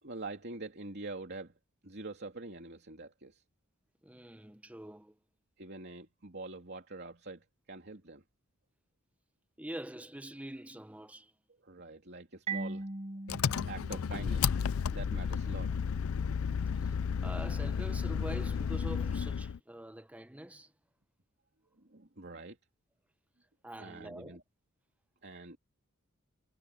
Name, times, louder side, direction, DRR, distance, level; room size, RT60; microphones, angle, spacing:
voice 1, 0.0-1.5 1.8-3.4 5.6-8.2 11.6-13.2 13.5-14.5 14.9-16.1 21.7-22.6 23.8-24.4 25.2-25.6, right 3 dB, 50° right, 3.0 m, -45 dB
voice 2, 4.0-5.2 9.6-11.3 16.7-17.0 17.2-20.7 23.6-24.4, right 1 dB, 5° right, 0.8 m, -45 dB
Marimba xylophone, 12.5-15.1, right 3 dB, 30° right, 1.1 m, -41 dB
Engine, 13.3-19.6, left 6 dB, 75° left, 0.4 m, -32 dB
head